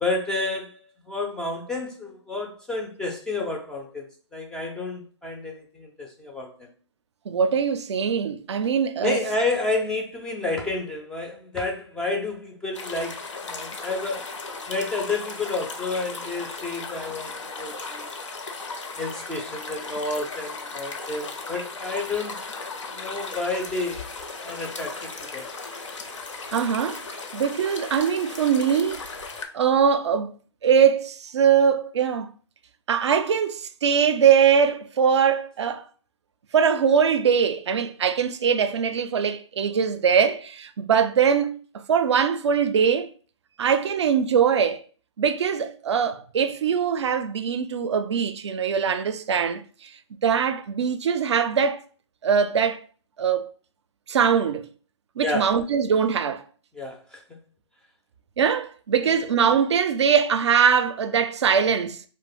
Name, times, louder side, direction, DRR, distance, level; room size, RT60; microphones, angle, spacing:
voice 1, 0.0-6.7 9.0-14.3 14.7-18.1 19.0-22.4 22.9-24.0 24.4-25.5 55.2-55.5 56.7-57.2 59.0-59.1, left 3 dB, 5° left, 0.3 m, -30 dB
voice 2, 7.3-9.2 26.5-27.0 27.3-29.0 29.5-30.3 30.6-32.3 32.9-35.9 36.5-41.6 41.9-43.1 43.6-44.8 45.2-49.9 50.2-51.8 52.2-52.9 53.2-53.5 54.1-54.7 55.2-56.4 58.4-62.0, right 7 dB, 65° right, 0.4 m, -22 dB
sound 1, 12.7-29.4, left 3 dB, 80° left, 0.7 m, -36 dB
2.4 x 2.1 x 3.9 m
figure-of-eight pair, 130°, 15 cm